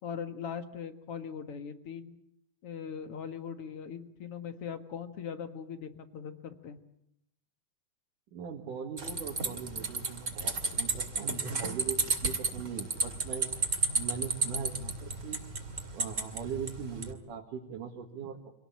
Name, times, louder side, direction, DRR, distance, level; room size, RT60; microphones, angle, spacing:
voice 1, 0.0-2.2 2.6-6.8, left 7 dB, 50° left, 8 dB, 2.2 m, -40 dB
voice 2, 8.3-13.5 13.9-14.9 15.2-15.4 15.9-18.6, right 7 dB, 75° right, 1 dB, 3.4 m, -40 dB
sound 1, 9.0-17.1, right 3 dB, 25° right, 2.3 m, -32 dB
26.0 x 18.5 x 8.7 m, 0.78 s
omnidirectional pair, 3.8 m